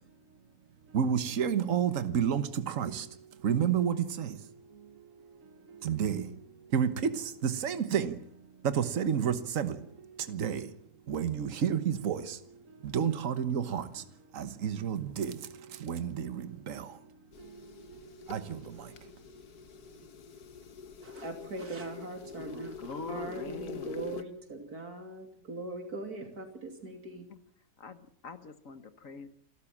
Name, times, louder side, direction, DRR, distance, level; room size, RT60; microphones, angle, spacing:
voice 1, 0.9-8.3 8.6-10.8 11.1-18.9, right 8 dB, 60° right, 1.6 m, -32 dB
sound 1, 17.3-24.2, left 6 dB, 80° left, 1.8 m, -45 dB
voice 2, 21.0-27.3, right 2 dB, 80° right, 3.4 m, -41 dB
voice 3, 22.4-23.9 27.8-29.3, left 4 dB, 60° left, 1.6 m, -44 dB
27.5 x 13.5 x 7.3 m
omnidirectional pair, 1.6 m